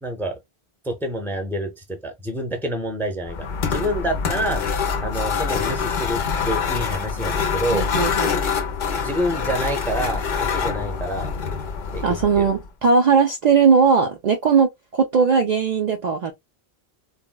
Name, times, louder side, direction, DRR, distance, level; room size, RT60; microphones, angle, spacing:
voice 1, 0.0-0.4 0.8-4.6 5.0-7.9 9.0-11.3 11.9-12.5, equal, 5° left, 0.5 m, -27 dB
sound 1, 3.2-12.6, left 6 dB, 55° left, 0.6 m, -25 dB
voice 2, 7.7-8.4 12.0-16.3, right 5 dB, 55° right, 0.5 m, -19 dB
4.1 x 2.0 x 2.2 m
omnidirectional pair, 1.1 m